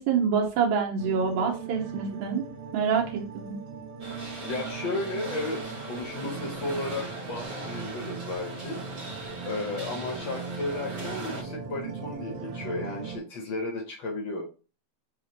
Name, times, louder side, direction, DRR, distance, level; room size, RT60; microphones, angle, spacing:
voice 1, 0.0-2.4 2.7-3.5, right 6 dB, 85° right, 0 dB, 2.2 m, -26 dB
sound 1, 1.0-13.2, right 5 dB, 65° right, 1.8 m, -39 dB
sound 2, 4.0-11.4, right 2 dB, 45° right, 1.6 m, -40 dB
voice 2, 4.4-8.8 9.4-14.4, left 2 dB, 80° left, 0 dB, 1.0 m, -34 dB
6.3 x 2.5 x 2.8 m, 0.34 s
omnidirectional pair, 3.3 m